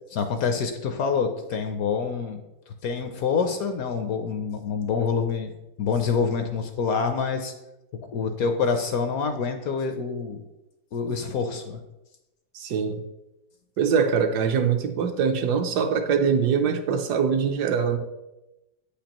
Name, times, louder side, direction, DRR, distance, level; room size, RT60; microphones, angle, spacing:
voice 1, 0.1-2.4 2.7-5.5 5.8-7.5 8.1-10.4 10.9-11.8, left 5 dB, 70° left, 6 dB, 0.9 m, -26 dB
voice 2, 12.5-13.0 13.8-18.0, right 6 dB, 75° right, 6 dB, 1.2 m, -23 dB
8.5 x 5.1 x 2.9 m, 0.95 s
omnidirectional pair, 1.9 m